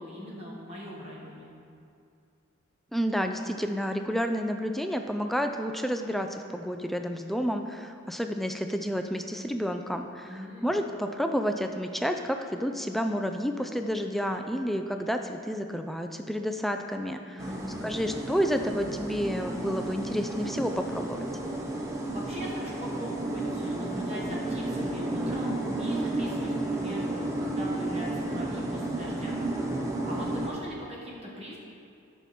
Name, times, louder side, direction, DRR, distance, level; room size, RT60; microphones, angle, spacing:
voice 1, 0.0-1.5 10.2-10.7 17.3-17.9 22.1-31.6, equal, 30° right, -5 dB, 1.5 m, -40 dB
voice 2, 2.9-17.4 17.8-21.2, equal, ahead, 5 dB, 0.3 m, -30 dB
sound 1, 17.4-30.5, right 2 dB, 15° right, 0.9 m, -32 dB
12.5 x 6.1 x 4.3 m, 2.5 s
head